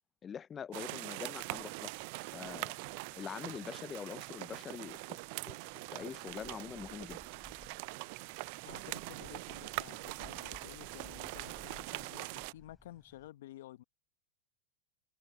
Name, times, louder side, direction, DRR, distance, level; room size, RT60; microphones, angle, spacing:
voice 1, 0.2-1.9 2.3-2.7 3.1-5.0 5.5-5.6 5.9-7.2, left 7 dB, 25° left, 0.4 m, -44 dB
sound 1, 0.7-12.5, right 27 dB, 55° right, 0.3 m, -43 dB
sound 2, 1.3-13.3, left 1 dB, 5° left, 5.8 m, -61 dB
voice 2, 8.6-13.8, left 14 dB, 70° left, 0.9 m, -52 dB
hypercardioid pair, 115°, 0 cm